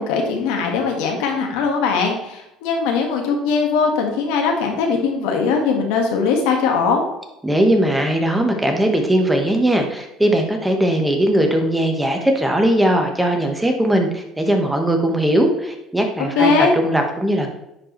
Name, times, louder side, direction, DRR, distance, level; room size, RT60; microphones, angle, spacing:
voice 1, 0.0-7.0 16.3-16.7, left 5 dB, 85° left, 2 dB, 1.5 m, -20 dB
voice 2, 7.4-17.5, right 1 dB, 5° right, 3 dB, 1.2 m, -19 dB
9.9 x 4.7 x 3.1 m, 0.87 s
cardioid pair, 115°, 0 cm